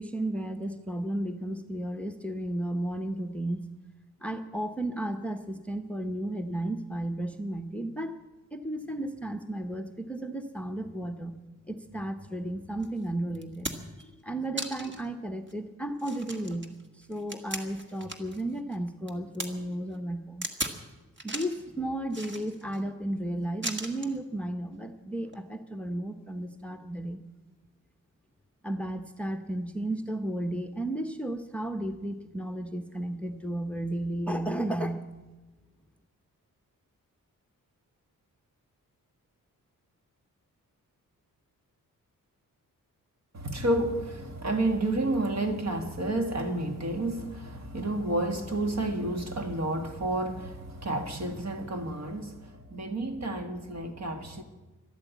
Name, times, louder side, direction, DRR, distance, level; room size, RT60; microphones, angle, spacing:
voice 1, 0.0-3.6 4.2-8.2 8.5-11.4 11.7-16.7 17.0-20.5 21.2-27.2 28.6-35.0, right 1 dB, 5° left, 0.8 m, -33 dB
sound 1, 12.8-12.9 13.4-14.0 14.6-15.1 15.5-15.6 16.0-18.4 18.7-19.5 20.4-20.8 21.2-21.6 22.1-22.8 23.6-24.2 25.2-25.4, right 2 dB, 35° right, 1.5 m, -37 dB
voice 2, 43.3-54.4, right 1 dB, 50° right, 1.8 m, -30 dB
13.0 x 12.5 x 8.2 m
wide cardioid pair, 115°, 34 cm